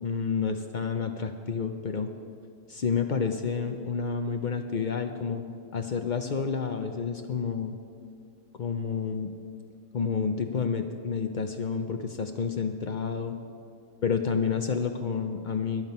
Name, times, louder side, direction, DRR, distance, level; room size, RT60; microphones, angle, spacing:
voice 1, 0.0-2.1 2.7-5.4 5.7-7.8 8.6-9.3 9.9-13.3 14.0-15.8, left 6 dB, 90° left, 6 dB, 0.4 m, -29 dB
21.5 x 7.5 x 5.4 m, 2.4 s
omnidirectional pair, 1.7 m